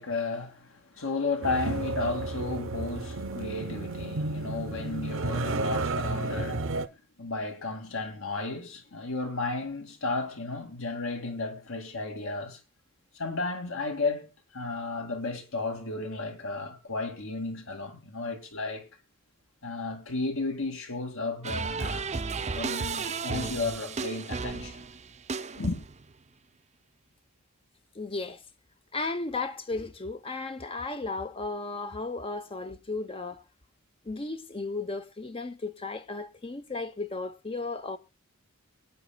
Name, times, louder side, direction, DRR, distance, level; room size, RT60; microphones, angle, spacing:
voice 1, 0.0-6.8 7.2-12.6 13.1-18.9 19.6-22.1 22.5-24.8 25.5-25.8, left 3 dB, 60° left, 2.2 m, -33 dB
sound 1, 1.4-6.9, right 2 dB, 60° right, 0.8 m, -32 dB
sound 2, 21.4-26.1, right 4 dB, 30° right, 0.6 m, -33 dB
voice 2, 27.9-28.4 28.9-33.4 34.0-38.0, left 3 dB, 25° left, 0.7 m, -35 dB
23.5 x 9.1 x 2.3 m
head